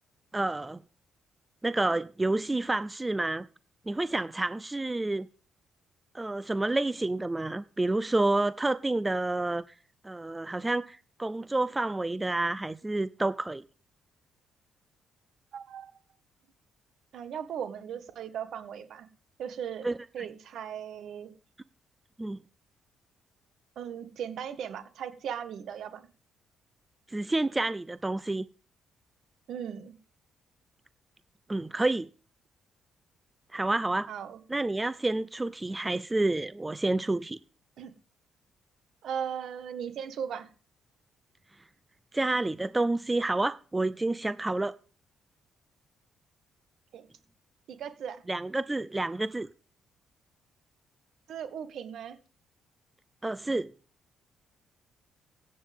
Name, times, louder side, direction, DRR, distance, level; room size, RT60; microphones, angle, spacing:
voice 1, 0.3-0.8 1.6-3.5 3.9-5.3 6.1-9.6 10.0-13.6 19.8-20.3 22.2-22.4 27.1-28.5 31.5-32.1 33.5-34.1 34.5-37.4 42.1-44.7 48.3-49.5 53.2-53.7, right 2 dB, 15° right, 0.4 m, -29 dB
voice 2, 15.5-15.9 17.1-19.1 19.4-19.9 20.1-21.3 23.7-26.1 29.5-29.9 34.1-34.4 37.8-37.9 39.0-40.5 46.9-47.1 47.7-48.2 51.3-52.2, right 8 dB, 70° right, 1.6 m, -37 dB
16.0 x 8.5 x 3.6 m
cardioid pair, 90°, 0 cm